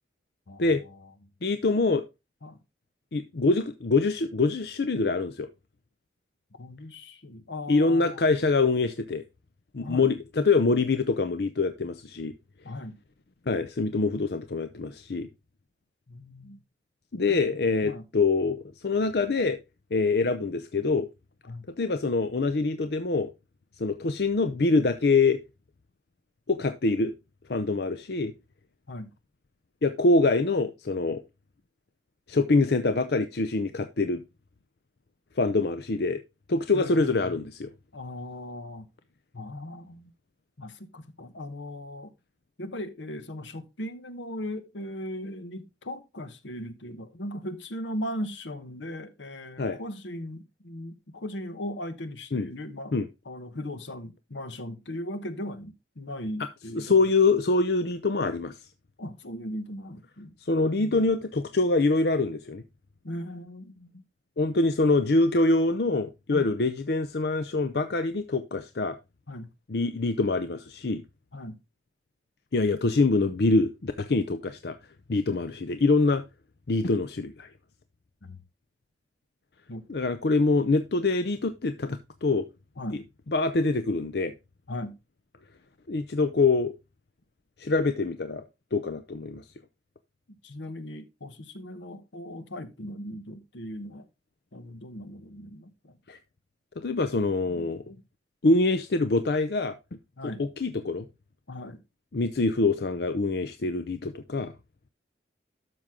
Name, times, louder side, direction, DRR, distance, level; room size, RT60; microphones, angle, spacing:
voice 1, 0.5-1.1 2.4-2.6 6.6-8.2 9.8-10.1 12.6-13.0 16.1-16.6 17.3-17.4 17.7-18.0 21.5-21.7 28.9-29.1 36.7-37.4 37.9-38.9 39.3-40.1 40.6-42.1 42.6-52.9 53.2-57.1 59.0-60.3 60.8-61.0 63.0-64.0 66.3-66.5 69.3-69.5 71.3-71.6 78.2-78.4 79.7-79.9 82.8-83.1 84.7-85.0 90.3-94.1 94.5-96.0 97.4-98.0 100.2-100.4 101.5-101.8, left 1 dB, 80° left, 1.1 m, -38 dB
voice 2, 1.4-2.0 3.1-5.5 7.7-9.2 9.7-12.3 13.5-15.3 17.1-19.6 19.9-21.1 21.8-23.3 23.8-25.4 26.5-27.1 27.5-28.3 29.8-31.2 32.3-34.2 35.4-36.2 36.5-37.7 49.6-49.8 52.3-52.5 52.9-53.1 56.7-58.6 60.4-62.6 64.4-69.0 69.7-71.0 72.5-74.8 75.1-76.2 76.7-77.5 79.9-82.4 83.3-84.3 85.9-86.7 87.6-88.4 88.7-89.4 96.1-96.2 96.8-97.8 98.4-99.8 100.2-101.1 102.1-104.5, left 3 dB, 60° left, 0.6 m, -25 dB
12.0 x 6.2 x 3.7 m
head